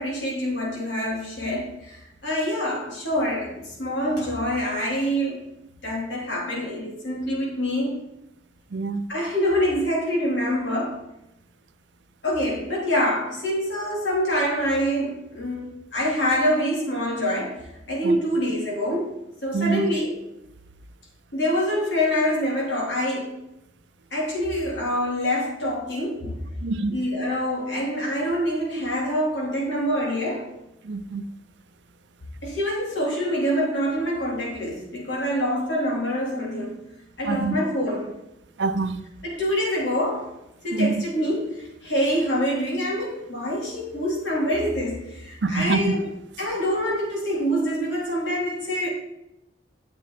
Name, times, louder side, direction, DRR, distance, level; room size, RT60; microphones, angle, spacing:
voice 1, 0.0-5.4 5.8-8.0 9.1-11.0 12.2-19.1 19.4-20.3 21.3-23.4 24.1-26.4 26.9-30.5 32.4-36.8 37.2-38.2 39.2-40.3 40.6-46.0 46.4-48.9, equal, 80° left, 3.7 m, -26 dB
voice 2, 8.7-9.0 18.0-18.2 19.5-19.8 26.6-26.9 30.9-31.2 37.3-37.6 38.6-39.0 40.7-40.9 45.4-45.8, right 4 dB, 80° right, 0.6 m, -25 dB
10.0 x 7.4 x 4.2 m
head